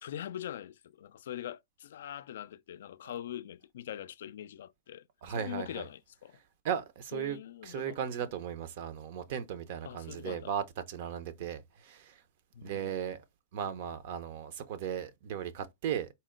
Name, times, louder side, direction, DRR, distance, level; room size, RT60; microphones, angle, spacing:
voice 1, 0.0-5.1 5.4-6.4 7.1-8.0 9.8-10.5 12.5-13.0, left 11 dB, 75° left, 0.3 m, -43 dB
voice 2, 5.2-5.9 6.6-12.2 12.6-13.2 13.5-16.1, right 8 dB, 55° right, 0.7 m, -36 dB
4.2 x 2.1 x 3.7 m
hypercardioid pair, 135°, 0 cm